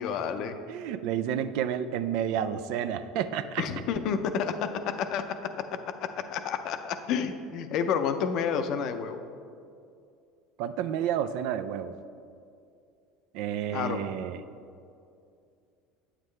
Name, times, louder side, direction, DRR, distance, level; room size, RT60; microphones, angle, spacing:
voice 1, 0.0-0.6 3.6-9.2 13.7-14.0, left 7 dB, 60° left, 8 dB, 0.5 m, -30 dB
voice 2, 0.7-3.6 10.6-11.9 13.3-14.4, right 9 dB, 70° right, 11 dB, 0.3 m, -30 dB
8.0 x 7.3 x 3.2 m, 2.4 s
supercardioid pair, 95°, 0 cm